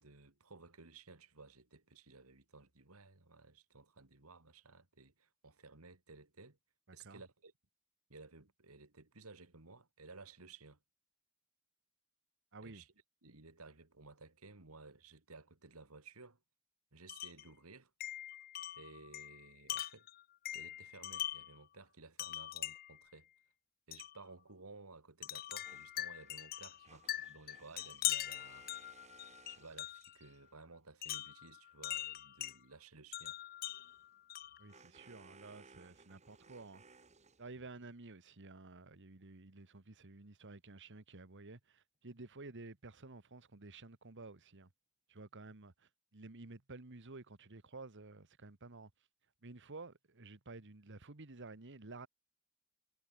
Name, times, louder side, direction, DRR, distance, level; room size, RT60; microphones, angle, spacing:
voice 1, 0.0-6.6 6.9-7.5 8.1-10.8 12.6-12.9 13.2-16.4 16.9-17.9 18.8-20.1 20.5-23.3 23.9-28.9 29.5-33.4, right 3 dB, 85° right, 2.5 m, -57 dB
voice 2, 12.5-12.8 34.6-36.8 37.4-44.7 45.1-48.9 49.4-52.1, right 3 dB, 60° right, 1.6 m, -52 dB
Wind chime, 17.1-17.5 18.0-21.6 22.2-23.0 23.9-24.2 25.2-30.2 31.0-32.6 33.1-34.7, left 13 dB, 45° left, 0.4 m, -42 dB
sound 1, 25.6-30.6 33.6-37.8, right 4 dB, 35° right, 2.9 m, -63 dB
head